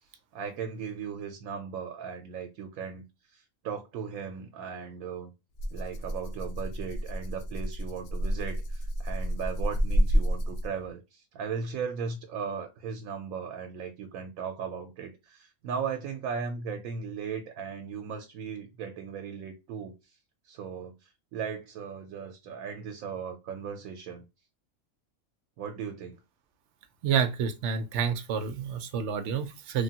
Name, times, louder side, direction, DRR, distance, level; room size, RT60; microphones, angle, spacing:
voice 1, 0.3-5.3 5.7-20.2 20.4-24.2 25.6-26.2, right 6 dB, 90° right, 1.0 m, -37 dB
Rattle (instrument), 5.6-10.9, equal, 65° left, 0.7 m, -29 dB
voice 2, 27.0-29.8, right 7 dB, 65° right, 0.8 m, -29 dB
3.3 x 2.2 x 2.7 m
omnidirectional pair, 1.4 m